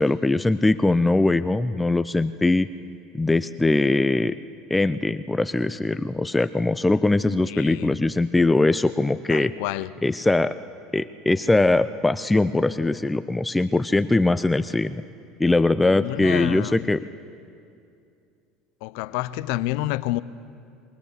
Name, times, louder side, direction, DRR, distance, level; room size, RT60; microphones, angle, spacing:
voice 1, 0.0-2.7 3.2-4.4 4.7-9.5 10.0-10.5 10.9-15.0 15.4-17.0, left 2 dB, 10° left, 0.4 m, -21 dB
voice 2, 7.5-7.9 9.3-10.0 15.8-16.9 18.8-20.2, left 16 dB, 75° left, 0.6 m, -29 dB
22.5 x 18.0 x 6.8 m
supercardioid pair, 95°, 0 cm